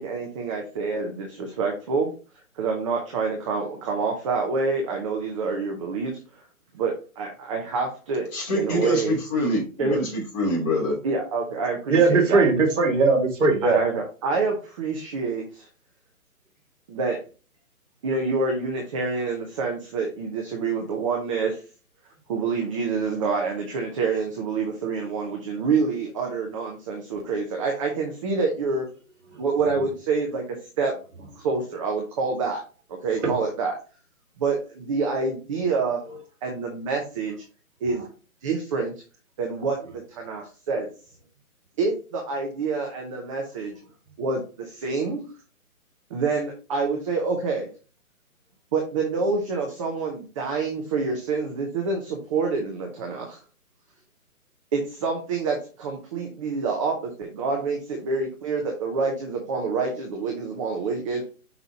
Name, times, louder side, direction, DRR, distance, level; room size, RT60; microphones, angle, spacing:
voice 1, 0.0-2.1 2.6-6.4 6.7-9.1 9.8-10.0 11.0-12.4 13.6-15.7 16.9-17.2 18.0-21.6 22.3-28.9 29.4-30.4 30.8-30.9 31.4-32.6 33.0-33.8 34.4-36.0 36.4-37.4 37.8-38.1 38.4-38.9 39.4-40.9 41.8-43.7 44.2-45.3 46.1-47.7 48.7-53.4 54.7-61.3, right 4 dB, 20° right, 0.9 m, -27 dB
voice 2, 8.3-11.0, left 1 dB, 30° left, 3.0 m, -25 dB
voice 3, 11.9-13.8 33.2-33.3, right 3 dB, 55° right, 2.2 m, -19 dB
5.9 x 5.5 x 2.9 m
figure-of-eight pair, 145°, 44 cm